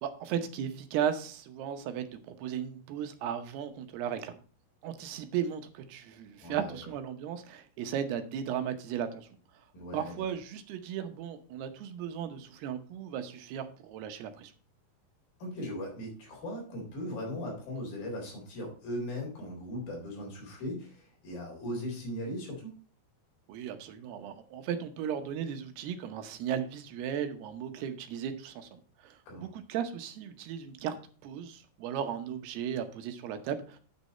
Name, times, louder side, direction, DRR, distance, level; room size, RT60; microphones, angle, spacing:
voice 1, 0.0-4.3 4.8-9.3 9.9-14.5 23.5-31.0 31.2-33.8, right 8 dB, 80° right, 8 dB, 3.0 m, -36 dB
voice 2, 6.4-6.8 9.7-10.1 15.4-22.7 29.3-29.5, left 1 dB, 60° left, -1 dB, 5.6 m, -38 dB
9.5 x 6.8 x 4.2 m, 0.39 s
omnidirectional pair, 4.6 m